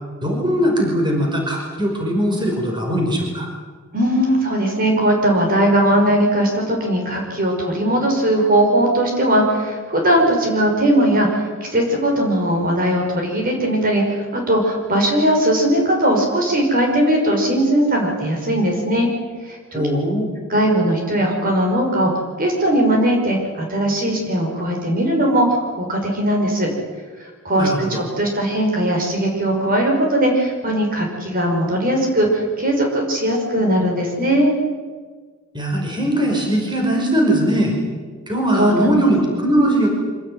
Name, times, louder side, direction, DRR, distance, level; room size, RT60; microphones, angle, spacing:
voice 1, 0.2-3.5 19.7-20.3 27.5-28.0 35.5-37.7 38.3-39.9, equal, 20° right, 1 dB, 5.4 m, -20 dB
voice 2, 3.9-19.1 19.4-19.8 20.5-22.1 22.4-26.7 27.5-34.5 38.6-38.9, right 1 dB, 45° right, 1 dB, 5.4 m, -19 dB
25.5 x 17.5 x 9.5 m, 1.5 s
head